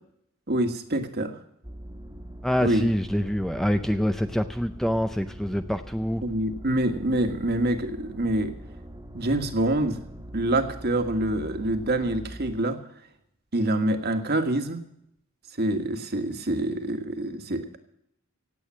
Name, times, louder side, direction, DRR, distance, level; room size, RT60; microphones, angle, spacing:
voice 1, 0.5-1.3 2.6-2.9 6.2-8.5 9.1-10.0 10.3-12.8 13.5-14.8 15.6-17.7, right 1 dB, 45° right, 7 dB, 1.6 m, -26 dB
sound 1, 1.6-12.5, right 1 dB, 15° right, 1.4 m, -42 dB
voice 2, 2.4-6.2, equal, ahead, 8 dB, 0.5 m, -26 dB
17.0 x 8.5 x 7.4 m, 0.76 s
head